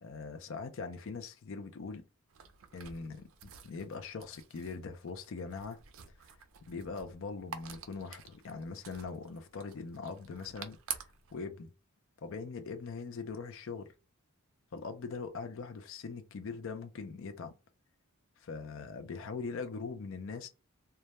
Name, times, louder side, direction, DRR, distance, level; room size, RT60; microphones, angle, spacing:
voice 1, 0.0-2.1 2.7-5.8 6.7-10.8 11.3-11.7 12.2-13.9 14.7-17.5 18.4-20.5, left 4 dB, 60° left, 0.4 m, -41 dB
sound 1, 2.3-11.4, right 8 dB, 60° right, 0.4 m, -48 dB
2.2 x 2.1 x 2.9 m
head